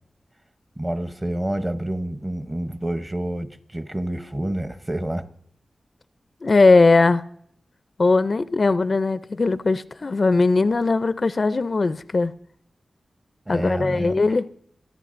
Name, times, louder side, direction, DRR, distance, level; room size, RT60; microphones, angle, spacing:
voice 1, 0.8-5.2 13.5-14.2, right 1 dB, 20° right, 0.7 m, -28 dB
voice 2, 6.4-7.2 8.0-12.3 13.5-14.5, left 3 dB, 45° left, 0.4 m, -19 dB
28.0 x 9.9 x 2.5 m
wide cardioid pair, 105°, 0 cm